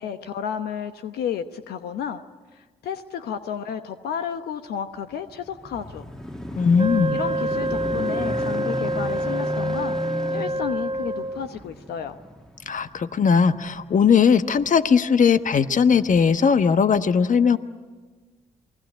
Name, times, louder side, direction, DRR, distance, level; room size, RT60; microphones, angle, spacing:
voice 1, 0.0-2.2 2.8-6.0 7.1-10.0 10.3-12.1, left 8 dB, 80° left, 9 dB, 1.0 m, -32 dB
sound 1, 5.1-13.9 14.5-14.7, equal, 5° left, 1.9 m, -34 dB
voice 2, 6.6-7.2 12.7-17.6, left 6 dB, 50° left, 11 dB, 1.2 m, -19 dB
Wind instrument woodwind instrument, 6.8-11.5, right 1 dB, 30° right, 1.5 m, -27 dB
28.0 x 21.0 x 8.9 m, 1.3 s
supercardioid pair, 50°, 16 cm